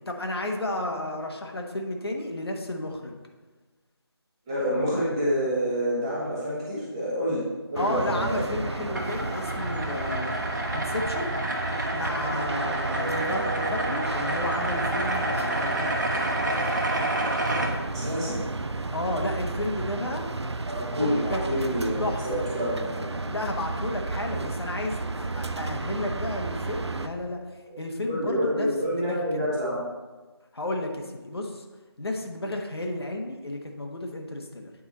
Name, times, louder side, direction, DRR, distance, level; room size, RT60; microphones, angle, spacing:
voice 1, 0.0-3.2 7.8-10.3 10.7-11.3 11.9-16.0 18.9-20.3 21.0-21.4 22.0-22.5 23.3-27.4 27.8-29.2 30.5-31.6 32.0-34.7, left 1 dB, 65° left, 2 dB, 1.3 m, -32 dB
voice 2, 4.5-7.4 7.7-8.4 8.8-8.9 17.9-18.4 20.6-23.0 28.1-29.8, equal, 10° right, -8 dB, 1.3 m, -28 dB
sound 1, 7.8-27.1, right 3 dB, 80° right, 0.6 m, -32 dB
sound 2, 8.3-17.7, right 1 dB, 45° right, 1.2 m, -29 dB
8.8 x 4.6 x 4.1 m, 1.3 s
figure-of-eight pair, 165°, 14 cm